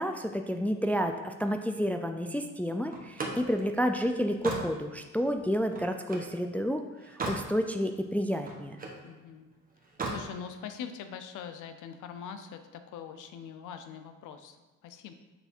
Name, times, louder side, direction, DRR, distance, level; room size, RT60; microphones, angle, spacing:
voice 1, 0.0-8.8, equal, 5° left, 6 dB, 0.3 m, -30 dB
Slam, 2.9-6.4 6.8-7.5 7.9-9.0 9.8-10.3, right 2 dB, 30° right, 1.2 m, -37 dB
voice 2, 9.0-9.5 10.1-14.6 14.8-15.1, left 7 dB, 80° left, 8 dB, 0.6 m, -43 dB
6.9 x 3.3 x 4.3 m, 1.1 s
cardioid pair, 90°, 30 cm